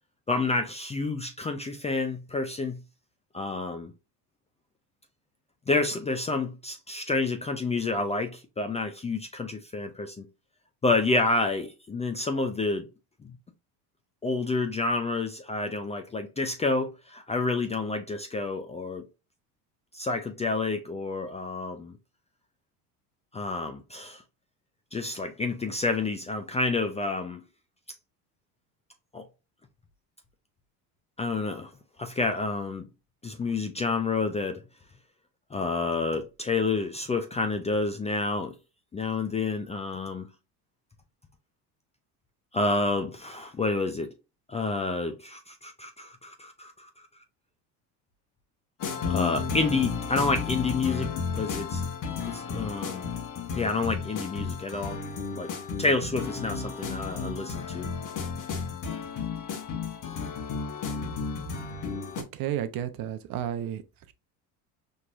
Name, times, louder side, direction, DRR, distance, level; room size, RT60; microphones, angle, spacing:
voice 1, 0.3-2.8 3.3-3.9 5.7-10.3 10.8-12.9 13.2-13.3 14.2-19.1 19.9-21.9 23.3-24.2 24.9-27.4 29.1-29.2 31.2-31.7 32.0-32.9 33.2-34.6 35.5-38.5 38.9-40.3 42.5-44.1 44.5-46.9 49.1-51.8 52.3-53.1 53.5-55.0 55.3-55.5 55.8-57.9, left 3 dB, 15° left, 0.4 m, -29 dB
sound 1, 48.8-62.2, left 5 dB, 45° left, 1.2 m, -33 dB
voice 2, 62.2-63.8, right 10 dB, 50° right, 0.8 m, -32 dB
4.4 x 3.1 x 2.4 m
supercardioid pair, 90°, 45 cm